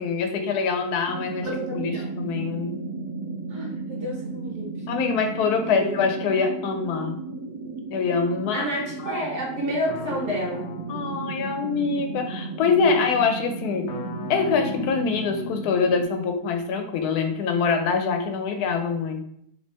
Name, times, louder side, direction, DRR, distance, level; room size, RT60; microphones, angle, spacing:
voice 1, 0.0-2.8 4.9-7.2 7.9-8.7 9.0-9.2 10.9-13.9 14.3-19.2, left 5 dB, 85° left, 5 dB, 1.1 m, -24 dB
sound 1, 1.1-16.0, right 3 dB, 80° right, 1.2 m, -34 dB
voice 2, 1.4-2.1 3.5-4.7 5.7-6.1 8.5-10.6, equal, 50° right, -4 dB, 1.4 m, -30 dB
sound 2, 9.9-12.3 13.9-16.2, left 5 dB, 65° left, 0.7 m, -38 dB
3.1 x 2.7 x 3.3 m, 0.70 s
omnidirectional pair, 1.6 m